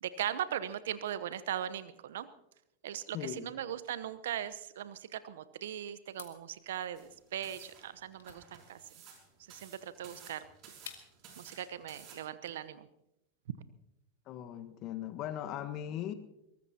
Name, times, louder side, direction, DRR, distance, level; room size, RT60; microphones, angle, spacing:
voice 1, 0.0-2.3 2.8-8.8 9.5-10.4 11.4-12.9, right 10 dB, 70° right, 0.9 m, -39 dB
voice 2, 3.1-3.5 14.3-16.1, left 11 dB, 45° left, 1.4 m, -39 dB
sound 1, 6.1-11.4, left 9 dB, 70° left, 2.3 m, -54 dB
sound 2, 7.0-12.2, right 6 dB, 45° right, 5.9 m, -55 dB
22.5 x 19.5 x 2.9 m
hypercardioid pair, 95°, 0 cm